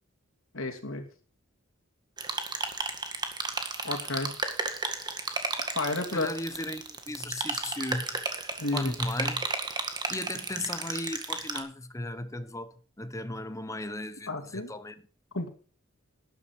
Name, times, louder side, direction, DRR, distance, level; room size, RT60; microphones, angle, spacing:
voice 1, 0.5-1.1 3.8-4.3 5.7-6.3 8.6-8.9 14.3-14.7 15.3-15.5, left 2 dB, 80° left, 2.7 m, -31 dB
sound 1, 2.2-11.6, right 3 dB, 20° right, 1.9 m, -33 dB
voice 2, 6.1-8.2 8.7-9.5 10.1-14.9, left 1 dB, 15° left, 1.2 m, -36 dB
12.5 x 10.5 x 4.7 m
head